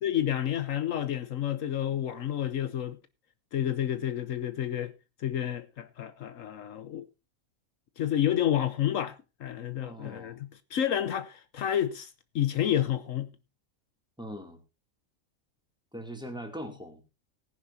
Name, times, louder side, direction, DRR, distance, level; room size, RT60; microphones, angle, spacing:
voice 1, 0.0-3.0 3.5-4.9 5.2-7.1 8.0-13.3, left 10 dB, 70° left, 1.2 m, -30 dB
voice 2, 9.8-10.4 14.2-14.6 15.9-17.0, equal, 5° right, 2.6 m, -41 dB
18.5 x 10.5 x 2.7 m
omnidirectional pair, 1.4 m